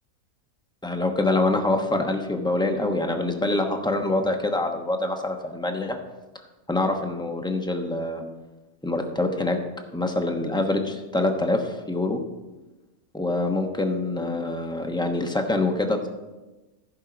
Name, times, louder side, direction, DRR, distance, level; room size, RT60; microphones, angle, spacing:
voice 1, 0.8-6.0 6.7-8.2 8.8-9.6 9.9-12.2 13.1-16.1, left 2 dB, 5° left, 4 dB, 0.8 m, -25 dB
14.5 x 5.5 x 6.1 m, 1.1 s
omnidirectional pair, 1.5 m